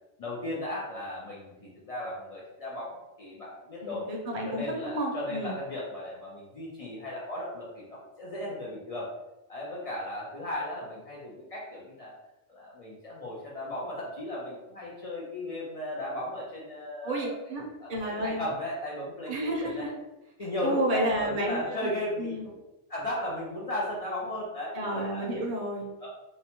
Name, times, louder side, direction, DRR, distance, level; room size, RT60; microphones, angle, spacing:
voice 1, 0.2-4.0 4.5-9.1 9.5-12.2 12.5-19.3 19.6-19.9 20.4-22.6 22.9-25.3 26.0-26.1, left 1 dB, 65° left, -5 dB, 0.3 m, -36 dB
voice 2, 3.8-5.5 17.0-18.4 19.3-19.9 20.6-21.9 22.2-22.5 24.7-25.9, right 1 dB, 50° right, -1 dB, 0.4 m, -31 dB
2.7 x 2.1 x 2.8 m, 0.97 s
omnidirectional pair, 1.3 m